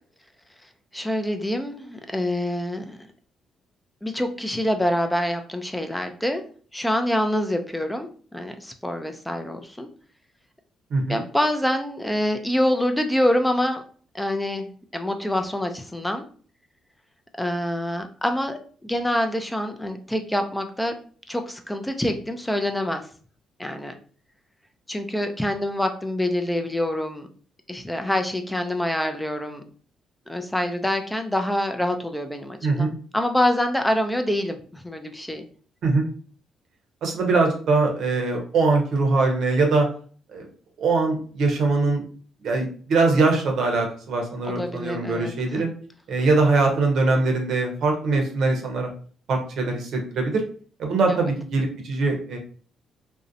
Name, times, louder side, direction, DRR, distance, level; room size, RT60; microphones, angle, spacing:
voice 1, 0.9-3.1 4.0-6.4 6.7-9.9 11.1-13.8 14.1-16.2 17.4-21.0 21.3-23.0 23.6-23.9 24.9-27.3 27.7-29.6 30.3-35.4 44.5-45.6 51.1-51.3, left 1 dB, 5° left, 6 dB, 0.3 m, -26 dB
voice 2, 10.9-11.2 32.6-32.9 35.8-36.1 37.0-39.9 40.3-40.4 40.8-42.0 42.4-45.7 46.1-48.9 49.3-50.4 50.8-52.4, right 3 dB, 70° right, 2 dB, 0.7 m, -22 dB
2.6 x 2.0 x 2.6 m, 0.43 s
cardioid pair, 90°, 0 cm